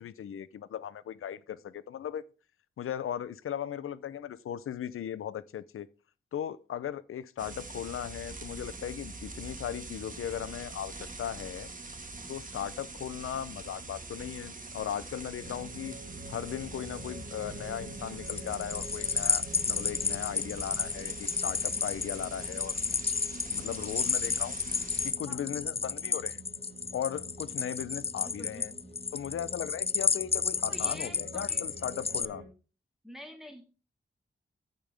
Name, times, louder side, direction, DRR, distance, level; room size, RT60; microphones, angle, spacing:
voice 1, 0.0-2.2 2.8-5.9 6.3-11.7 12.3-16.0 16.3-22.8 23.5-24.6 25.0-26.4 26.9-28.7 29.1-32.4, left 9 dB, 85° left, 0.5 m, -37 dB
sound 1, 7.4-25.1, right 3 dB, 40° right, 1.7 m, -44 dB
sound 2, 15.4-32.5, right 1 dB, 65° right, 2.8 m, -47 dB
sound 3, 18.3-32.3, left 5 dB, 30° left, 0.4 m, -32 dB
voice 2, 28.2-28.8 30.7-31.6 33.0-33.6, left 1 dB, ahead, 1.9 m, -46 dB
14.5 x 5.2 x 3.4 m
wide cardioid pair, 80°, 21 cm